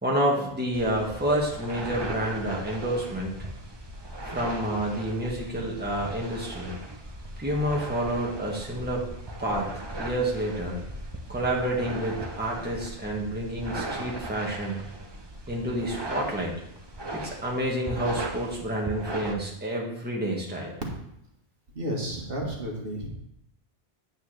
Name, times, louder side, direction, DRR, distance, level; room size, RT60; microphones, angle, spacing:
voice 1, 0.0-3.4 4.2-6.7 7.4-9.1 9.4-9.7 9.9-10.8 11.3-14.8 15.5-16.5 17.1-20.7, right 1 dB, 10° right, -3 dB, 1.6 m, -29 dB
sound 1, 0.7-19.3, right 1 dB, 25° right, 0.9 m, -38 dB
voice 2, 21.7-23.1, equal, 55° right, -1 dB, 1.7 m, -32 dB
8.7 x 8.4 x 3.3 m, 0.78 s
omnidirectional pair, 1.1 m